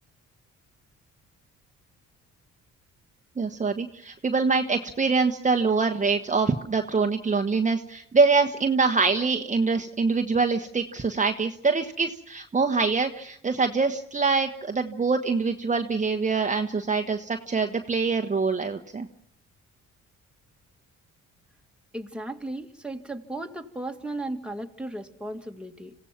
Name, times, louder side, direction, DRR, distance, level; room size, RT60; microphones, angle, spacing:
voice 1, 3.4-19.1, right 4 dB, 25° right, 5 dB, 1.2 m, -24 dB
voice 2, 21.9-25.9, right 1 dB, 5° right, 3 dB, 2.1 m, -35 dB
27.0 x 16.5 x 5.9 m, 0.67 s
cardioid pair, 90°, 30 cm